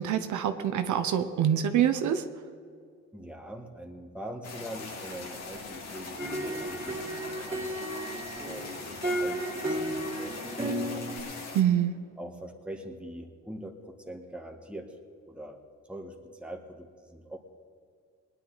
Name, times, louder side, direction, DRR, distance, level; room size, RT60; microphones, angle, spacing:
voice 1, 0.0-2.2 11.5-11.9, right 9 dB, 75° right, 8 dB, 0.9 m, -25 dB
voice 2, 3.1-8.0 8.4-11.0 12.2-15.0 15.3-15.6 15.9-17.4, right 1 dB, 5° right, 3 dB, 1.6 m, -43 dB
sound 1, 4.4-11.6, left 4 dB, 60° left, 2.2 m, -41 dB
sound 2, 6.2-11.2, right 1 dB, 20° right, 3.0 m, -33 dB
20.0 x 10.0 x 4.1 m, 2.3 s
cardioid pair, 90°, 30 cm